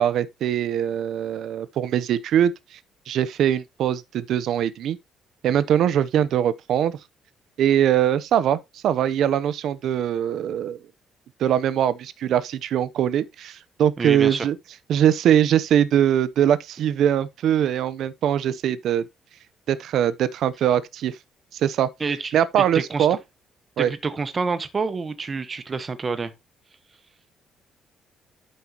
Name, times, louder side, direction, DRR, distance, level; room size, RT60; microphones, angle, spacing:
voice 1, 0.0-2.5 3.1-5.0 5.4-7.0 7.6-10.8 11.4-14.6 14.9-19.1 19.7-21.2 21.5-21.9 22.3-23.2 23.8-23.9, right 10 dB, 70° right, 0.8 m, -22 dB
voice 2, 14.0-14.5 22.0-23.1 23.8-26.3, right 4 dB, 25° right, 1.2 m, -28 dB
12.0 x 5.4 x 3.0 m
cardioid pair, 140°, 0 cm